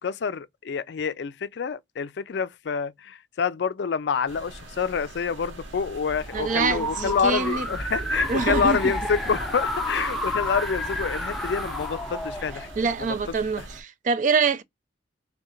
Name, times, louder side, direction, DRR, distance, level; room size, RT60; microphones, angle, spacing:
voice 1, 0.0-12.7, left 6 dB, 65° left, 0.4 m, -27 dB
sound 1, 4.3-13.8, right 2 dB, 85° right, 1.0 m, -44 dB
sound 2, 6.1-13.2, left 1 dB, ahead, 0.6 m, -31 dB
voice 2, 6.3-7.7 8.0-8.8 12.8-14.6, right 5 dB, 40° right, 0.3 m, -25 dB
3.6 x 2.2 x 4.2 m
head